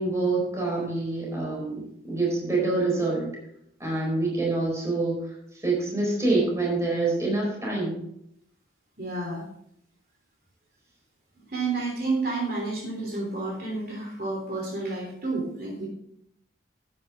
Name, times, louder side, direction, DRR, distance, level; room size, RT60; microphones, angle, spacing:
voice 1, 0.0-3.3 3.8-5.3 5.6-8.0, right 2 dB, 15° right, -3 dB, 4.5 m, -26 dB
voice 2, 9.0-9.4 11.5-15.9, right 3 dB, 55° right, -2 dB, 3.2 m, -30 dB
11.5 x 9.4 x 3.6 m, 0.73 s
head